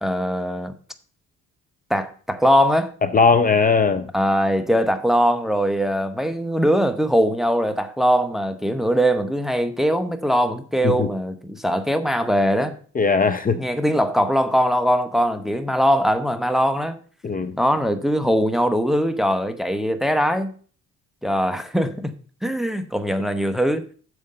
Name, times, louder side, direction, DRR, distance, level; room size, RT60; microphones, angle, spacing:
voice 1, 0.0-0.7 1.9-2.9 4.1-12.8 13.6-17.0 17.5-20.6 21.2-22.2 22.4-23.8, equal, ahead, 0.8 m, -21 dB
voice 2, 3.0-4.1 10.8-11.1 12.9-13.7 17.2-17.5, left 4 dB, 30° left, 0.7 m, -19 dB
7.2 x 4.9 x 6.5 m
cardioid pair, 90°, 30 cm